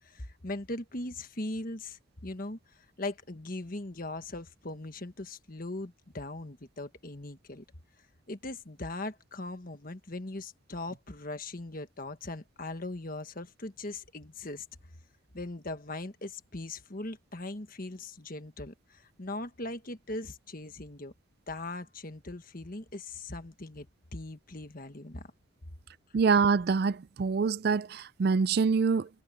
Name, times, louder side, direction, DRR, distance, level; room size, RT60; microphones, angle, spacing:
voice 1, 0.0-7.6 8.3-14.6 15.3-21.1 21.5-25.3, left 2 dB, 40° left, 1.5 m, -40 dB
voice 2, 26.1-29.1, right 5 dB, 50° right, 0.4 m, -25 dB
head